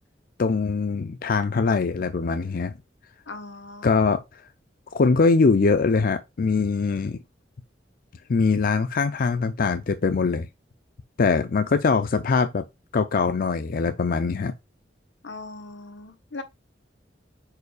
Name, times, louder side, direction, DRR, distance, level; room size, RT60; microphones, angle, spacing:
voice 1, 0.4-2.7 3.8-4.2 4.9-7.2 8.3-10.5 11.2-12.7 12.9-14.5, left 4 dB, 55° left, 0.5 m, -22 dB
voice 2, 3.3-3.9 15.2-16.4, left 3 dB, 85° left, 1.2 m, -39 dB
4.7 x 4.5 x 4.8 m
head